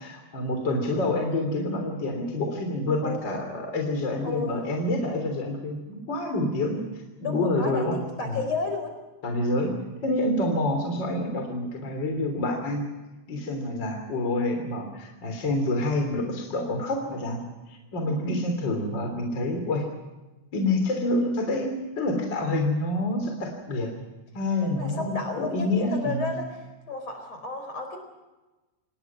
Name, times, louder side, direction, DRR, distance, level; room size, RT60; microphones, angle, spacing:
voice 1, 0.0-6.8 7.2-8.0 8.2-8.4 9.2-9.7 10.0-12.9 13.3-17.4 17.7-19.9 20.5-23.9 24.3-26.3, left 1 dB, 35° left, 3 dB, 3.8 m, -27 dB
voice 2, 3.0-3.5 4.2-4.6 7.2-8.9 24.6-26.5 26.9-28.0, left 4 dB, 50° left, 6 dB, 5.4 m, -32 dB
28.0 x 20.0 x 6.1 m, 1.1 s
omnidirectional pair, 3.7 m